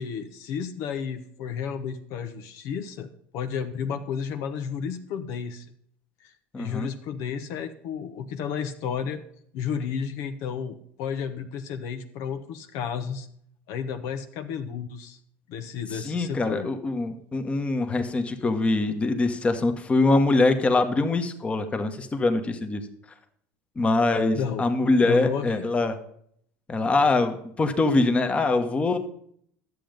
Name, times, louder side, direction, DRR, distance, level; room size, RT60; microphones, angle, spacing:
voice 1, 0.0-3.1 3.3-5.6 6.2-9.2 9.5-13.3 13.7-15.2 15.5-16.7 24.3-24.7 25.0-25.7, left 7 dB, 70° left, 8 dB, 1.0 m, -32 dB
voice 2, 6.5-6.9 15.9-22.8 23.7-26.0 26.7-29.0, left 3 dB, 20° left, 7 dB, 1.3 m, -23 dB
11.5 x 7.7 x 5.2 m, 0.67 s
supercardioid pair, 115°, 6 cm